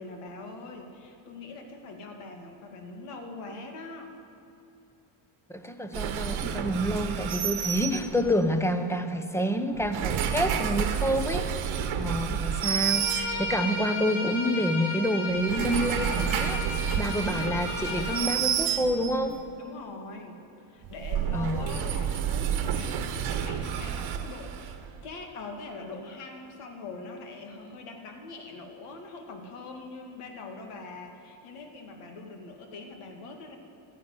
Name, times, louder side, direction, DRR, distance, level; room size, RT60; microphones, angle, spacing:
voice 1, 0.0-4.1 19.6-20.4 20.7-24.8 25.0-33.6, left 3 dB, 85° left, 3 dB, 2.3 m, -42 dB
voice 2, 5.5-16.6 17.0-19.4 21.3-21.6, equal, 5° left, 8 dB, 0.8 m, -28 dB
sound 1, 5.9-8.5 9.7-13.8 15.3-19.3 20.8-25.0, right 8 dB, 75° right, 1.3 m, -30 dB
Bowed string instrument, 12.7-18.2, left 2 dB, 70° left, 3.7 m, -34 dB
13.5 x 10.0 x 9.7 m, 2.8 s
cardioid pair, 135°, 50 cm